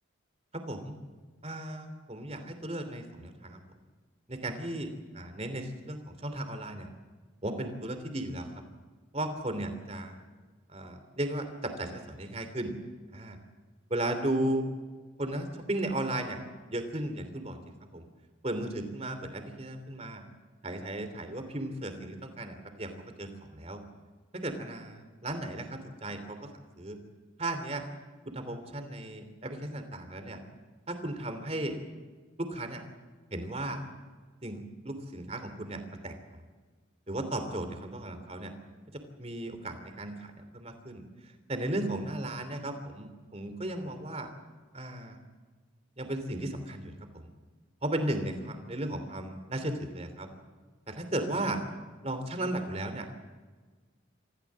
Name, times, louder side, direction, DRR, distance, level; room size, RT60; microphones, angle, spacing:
voice 1, 0.5-0.9 1.4-3.6 4.3-4.9 5.1-6.9 7.4-8.5 9.1-10.1 10.7-12.7 13.1-13.4 13.9-14.6 15.2-16.4 16.7-17.6 17.9-18.0 18.4-20.2 20.6-22.9 23.2-23.8 24.3-26.4 26.8-27.0 27.4-27.8 28.2-30.4 30.9-31.7 32.4-32.8 33.3-33.8 34.4-36.4 37.1-38.5 39.2-41.0 41.5-44.3 44.7-45.2 46.0-47.3 47.8-50.3 50.9-51.6 52.0-53.1, right 1 dB, 30° right, 8 dB, 2.9 m, -35 dB
26.0 x 16.0 x 7.5 m, 1.4 s
head